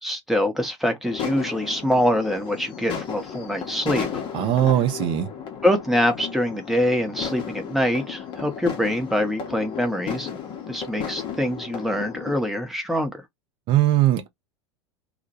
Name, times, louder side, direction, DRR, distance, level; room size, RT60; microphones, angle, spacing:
voice 1, 0.0-4.2 5.6-10.4 10.7-13.2, equal, ahead, 0.7 m, -24 dB
sound 1, 1.0-12.4, left 7 dB, 35° left, 0.6 m, -34 dB
voice 2, 4.3-5.3 13.7-14.3, right 12 dB, 40° right, 0.6 m, -20 dB
2.1 x 2.1 x 2.8 m
figure-of-eight pair, 80°, 15 cm